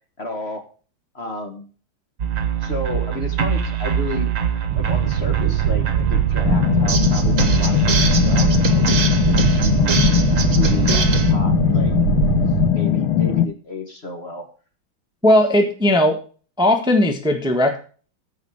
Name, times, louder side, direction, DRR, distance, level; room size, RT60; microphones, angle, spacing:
voice 1, 0.2-0.6 1.1-1.7 2.6-4.3 4.7-9.9 10.5-12.0 12.2-14.5, left 1 dB, 35° left, 4 dB, 1.6 m, -32 dB
sound 1, 2.2-11.3, right 7 dB, 45° right, 1.5 m, -22 dB
Boat Water vehicle, 4.7-12.7, right 9 dB, 80° right, 1.5 m, -23 dB
sound 2, 6.5-13.5, left 10 dB, 85° left, 1.6 m, -19 dB
voice 2, 15.2-16.2 16.6-17.8, left 1 dB, 5° right, 4 dB, 1.3 m, -17 dB
14.5 x 5.1 x 4.8 m, 0.39 s
omnidirectional pair, 2.2 m